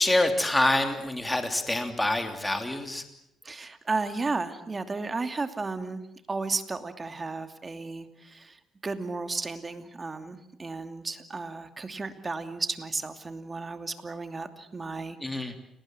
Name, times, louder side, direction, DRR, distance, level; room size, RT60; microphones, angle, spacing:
voice 1, 0.0-3.1 15.2-15.5, left 1 dB, 10° left, 6 dB, 3.1 m, -26 dB
voice 2, 3.4-6.0 6.3-15.6, right 3 dB, 30° right, 8 dB, 2.7 m, -34 dB
29.5 x 19.5 x 7.9 m, 0.81 s
cardioid pair, 90°, 0 cm